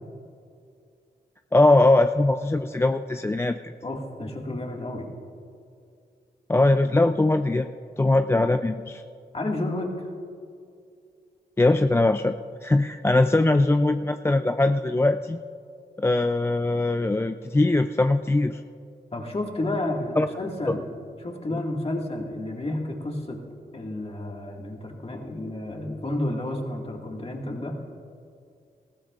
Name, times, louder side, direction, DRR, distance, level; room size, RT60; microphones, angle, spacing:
voice 1, 1.5-3.7 6.5-7.7 8.0-9.0 11.6-12.3 12.6-15.4 16.0-18.6 20.2-20.3 20.7-20.8, left 2 dB, 15° left, 8 dB, 0.3 m, -21 dB
voice 2, 3.8-5.1 9.3-10.1 13.4-13.5 19.1-20.9 21.2-23.4 23.7-27.8, left 1 dB, 35° left, 0 dB, 1.9 m, -31 dB
19.0 x 15.5 x 2.5 m, 2.4 s
cardioid pair, 70°, 17 cm